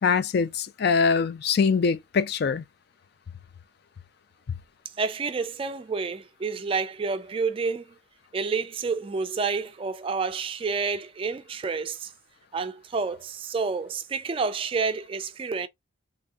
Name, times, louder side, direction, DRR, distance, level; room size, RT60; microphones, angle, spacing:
voice 1, 0.0-2.6, left 5 dB, 55° left, 0.4 m, -23 dB
voice 2, 5.0-7.9 8.3-12.1 12.5-15.7, right 4 dB, 30° right, 0.3 m, -29 dB
3.1 x 2.7 x 3.4 m
head